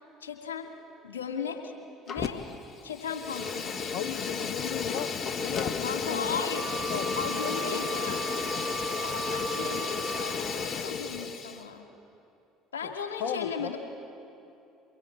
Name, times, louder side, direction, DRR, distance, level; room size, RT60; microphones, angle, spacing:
voice 1, 0.2-0.7 1.0-1.7 2.1-2.4 2.8-3.9 5.8-6.7 6.9-8.2 9.0-11.9 12.7-13.8, left 6 dB, 85° left, 4 dB, 2.5 m, -36 dB
Fire, 2.1-2.6 2.9-11.6, left 5 dB, 45° left, 1.6 m, -33 dB
voice 2, 3.9-5.2 5.4-6.5 6.9-7.1 7.7-7.9 8.1-8.3 12.8-12.9 13.2-13.7, left 11 dB, 65° left, 7 dB, 1.0 m, -36 dB
Wind instrument woodwind instrument, 6.5-10.6, right 5 dB, 30° right, 1.2 m, -37 dB
24.0 x 23.0 x 8.7 m, 2.7 s
hypercardioid pair, 60°, 0 cm